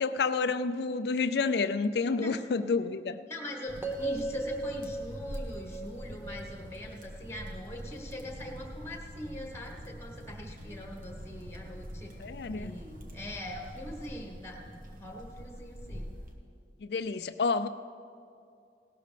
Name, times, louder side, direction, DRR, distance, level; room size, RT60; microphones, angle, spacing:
voice 1, 0.0-3.2 12.2-12.8 16.8-17.7, left 4 dB, 65° left, 12 dB, 0.4 m, -29 dB
voice 2, 3.3-12.1 12.6-16.1, left 1 dB, 15° left, 1 dB, 1.4 m, -42 dB
sound 1, 3.7-16.3, equal, 50° right, 1.4 m, -44 dB
sound 2, 3.8-7.9, right 2 dB, 15° right, 0.7 m, -38 dB
17.5 x 12.5 x 3.4 m, 2.4 s
head